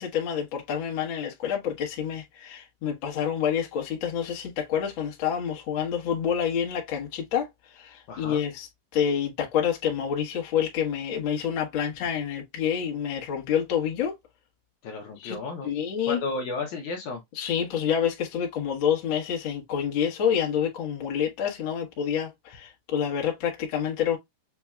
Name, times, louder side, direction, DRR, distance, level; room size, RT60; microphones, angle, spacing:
voice 1, 0.0-8.7 8.9-14.1 15.2-15.4 15.6-16.2 17.4-24.2, left 8 dB, 50° left, 1.6 m, -28 dB
voice 2, 8.1-8.4 14.8-15.7 16.1-17.2, left 3 dB, 70° left, 2.1 m, -33 dB
7.0 x 2.8 x 2.3 m
omnidirectional pair, 3.9 m